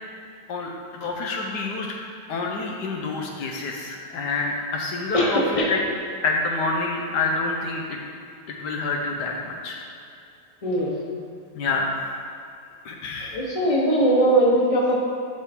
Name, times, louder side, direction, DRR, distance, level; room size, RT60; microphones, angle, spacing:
voice 1, 0.5-2.0 2.3-5.8 6.2-8.0 8.5-9.8 11.5-12.0 12.8-13.4, left 3 dB, 75° left, 0 dB, 1.4 m, -27 dB
voice 2, 5.1-5.7 10.6-10.9 13.3-14.9, right 1 dB, 25° left, -4 dB, 1.1 m, -20 dB
11.0 x 3.7 x 4.4 m, 2.5 s
omnidirectional pair, 1.8 m